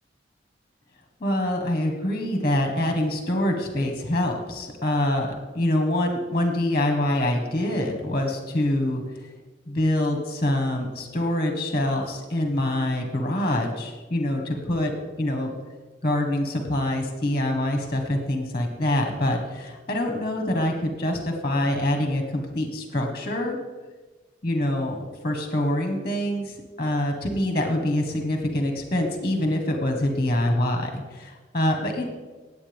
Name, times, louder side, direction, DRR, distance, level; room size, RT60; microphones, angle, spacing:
voice 1, 1.2-5.3 5.5-9.0 9.7-14.9 15.2-15.5 16.0-23.6 24.4-32.1, left 1 dB, 30° left, 3 dB, 1.3 m, -25 dB
18.0 x 8.3 x 3.5 m, 1.3 s
head